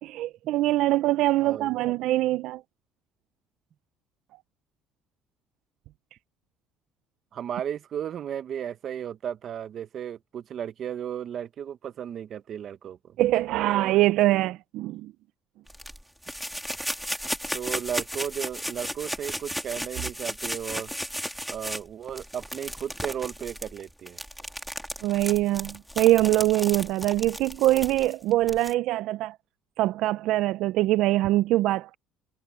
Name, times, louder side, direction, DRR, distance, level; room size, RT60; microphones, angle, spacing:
voice 1, 0.0-2.6 13.2-15.1 25.0-29.4 29.8-32.0, right 16 dB, 70° right, 0.4 m, -23 dB
voice 2, 1.4-1.9 7.3-13.2 13.7-14.0 17.5-20.9 21.5-24.2, right 9 dB, 45° right, 0.9 m, -35 dB
sound 1, 15.7-28.7, equal, ahead, 2.7 m, -35 dB
cardioid pair, 145°, 0 cm